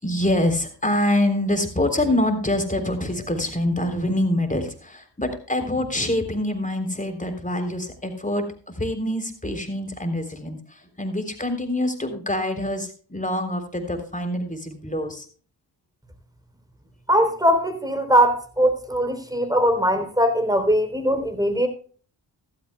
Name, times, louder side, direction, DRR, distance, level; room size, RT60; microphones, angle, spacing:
voice 1, 0.0-15.3, left 1 dB, 15° left, 6 dB, 3.5 m, -25 dB
voice 2, 17.1-21.7, equal, 10° right, 7 dB, 3.6 m, -20 dB
15.0 x 13.0 x 2.3 m, 0.40 s
supercardioid pair, 45°, 46 cm